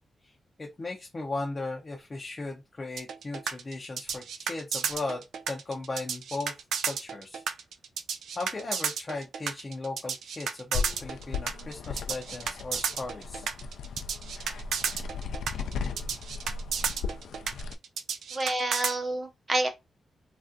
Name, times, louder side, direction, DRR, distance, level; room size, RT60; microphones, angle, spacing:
voice 1, 0.6-6.5 6.9-7.4 8.4-13.5, left 2 dB, 25° left, 0.4 m, -37 dB
sound 1, 3.0-19.0, right 6 dB, 90° right, 0.4 m, -32 dB
sound 2, 10.7-17.7, left 5 dB, 90° left, 0.3 m, -36 dB
voice 2, 18.3-19.7, right 2 dB, 25° right, 0.6 m, -28 dB
3.2 x 2.4 x 2.5 m
wide cardioid pair, 175°, 0 cm